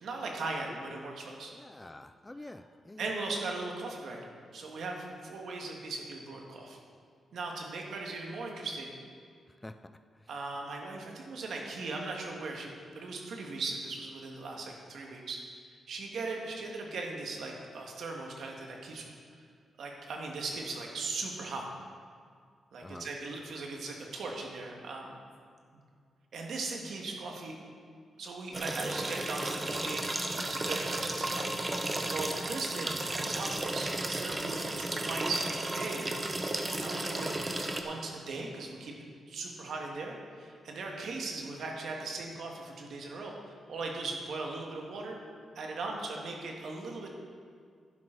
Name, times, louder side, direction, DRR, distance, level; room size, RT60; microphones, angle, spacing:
voice 1, 0.0-1.5 3.0-4.2 4.5-6.8 7.3-8.9 10.3-15.4 15.9-19.1 19.8-21.7 22.7-25.2 26.3-27.5 28.2-31.5 32.1-36.1 36.8-37.4 37.8-38.9 39.3-45.2 45.5-47.1, right 3 dB, 75° right, 1 dB, 1.7 m, -38 dB
voice 2, 0.7-1.0 1.5-3.1 9.6-10.0 22.8-23.1, left 2 dB, 15° left, 10 dB, 0.3 m, -47 dB
sound 1, 28.5-37.8, right 2 dB, 20° right, 0.9 m, -34 dB
11.0 x 10.5 x 3.9 m, 2.1 s
cardioid pair, 110°, 0 cm